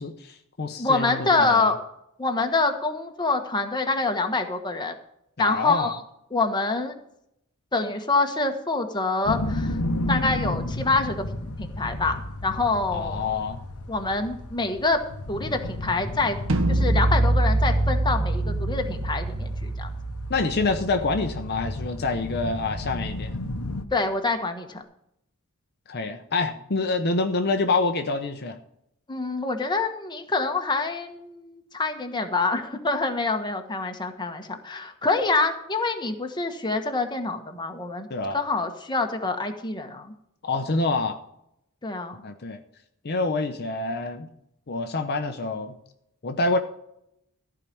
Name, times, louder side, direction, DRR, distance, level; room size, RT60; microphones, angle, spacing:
voice 1, 0.0-1.7 5.4-5.9 12.9-13.6 20.3-23.4 25.9-28.6 38.1-38.4 40.4-41.2 42.2-42.6 43.0-44.3 44.7-45.8 46.2-46.6, left 3 dB, 50° left, 6 dB, 0.8 m, -27 dB
voice 2, 0.8-1.8 2.2-5.0 5.4-6.0 6.3-7.0 7.7-9.8 10.1-13.2 13.9-15.0 15.3-16.4 16.7-19.9 23.9-24.8 29.1-38.1 38.3-40.1 41.8-42.2, left 3 dB, 20° left, 5 dB, 1.3 m, -26 dB
sound 1, 9.2-23.8, left 1 dB, 80° left, 1.1 m, -33 dB
sound 2, 16.5-22.5, right 2 dB, 65° right, 1.5 m, -25 dB
14.0 x 4.9 x 8.6 m, 0.77 s
head